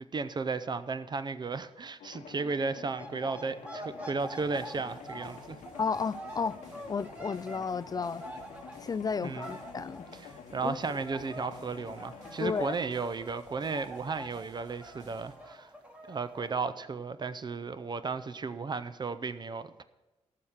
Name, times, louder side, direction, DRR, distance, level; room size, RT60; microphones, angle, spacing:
voice 1, 0.1-5.6 9.2-9.5 10.1-15.7 16.1-19.8, right 4 dB, 40° right, 0.5 m, -34 dB
sound 1, 2.0-12.4, left 7 dB, 90° left, 1.0 m, -49 dB
sound 2, 2.9-10.8 11.0-16.5, right 1 dB, 10° right, 1.5 m, -46 dB
sound 3, 4.2-15.3, right 2 dB, 80° right, 2.5 m, -59 dB
voice 2, 5.8-6.6 6.9-8.2 8.8-10.1 10.6-10.8 12.4-12.7, left 5 dB, 35° left, 0.3 m, -32 dB
14.0 x 5.8 x 6.6 m
cardioid pair, 80°, 12 cm